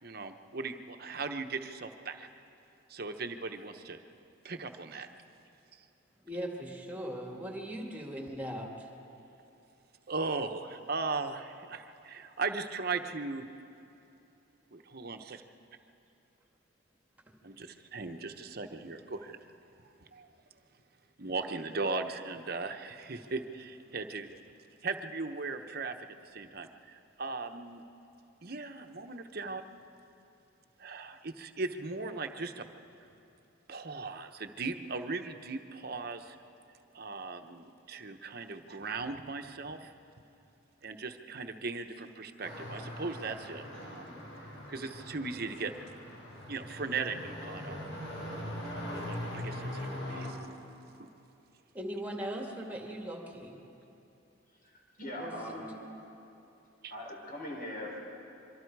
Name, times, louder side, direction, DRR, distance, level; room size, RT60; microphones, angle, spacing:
voice 1, 0.0-2.3 2.9-4.0 4.4-5.1 10.1-13.5 14.7-15.4 17.4-19.4 19.8-20.3 21.2-24.4 24.8-25.9 26.2-27.8 28.4-29.6 30.8-32.6 33.7-36.4 36.9-39.9 40.8-44.2 44.7-45.7 46.5-47.8 48.9-50.4 51.0-51.1 56.8-56.9, right 3 dB, 50° right, 6 dB, 1.0 m, -38 dB
voice 2, 6.3-8.9 51.7-53.6 55.2-55.6, equal, 10° right, 1 dB, 2.1 m, -39 dB
sound 1, 42.4-50.3, left 1 dB, 65° left, 5.0 m, -41 dB
voice 3, 55.0-55.8 56.9-58.0, left 1 dB, 45° left, -2 dB, 4.7 m, -40 dB
26.0 x 24.0 x 4.8 m, 2.8 s
head